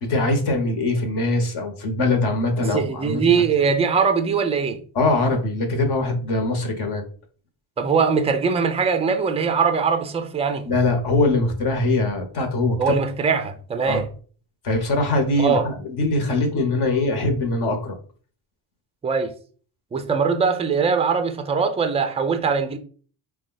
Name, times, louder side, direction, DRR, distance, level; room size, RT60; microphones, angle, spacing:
voice 1, 0.0-3.2 4.9-7.1 10.7-13.0 13.8-14.1 14.6-18.0, left 2 dB, 50° left, 1.1 m, -22 dB
voice 2, 2.7-4.8 7.8-10.6 12.8-14.0 15.4-15.6 19.0-19.3 19.9-22.8, right 5 dB, 15° right, 0.3 m, -21 dB
4.9 x 2.3 x 3.9 m
cardioid pair, 150°, 49 cm